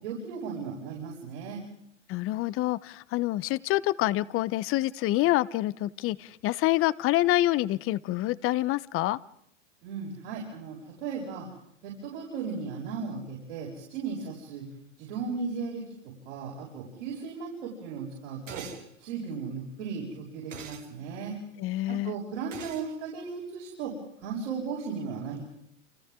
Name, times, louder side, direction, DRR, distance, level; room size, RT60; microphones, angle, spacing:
voice 1, 0.0-1.6 9.8-11.5 11.8-14.7 15.0-18.7 19.0-21.4 21.9-25.4, right 5 dB, 65° right, -4 dB, 6.9 m, -36 dB
voice 2, 2.1-9.2 21.6-22.1, left 16 dB, 35° left, 19 dB, 0.9 m, -27 dB
sound 1, 18.5-18.8 20.5-20.9 22.5-22.9, right 7 dB, 90° right, 3.5 m, -42 dB
29.5 x 28.5 x 3.8 m, 0.73 s
hypercardioid pair, 100°, 37 cm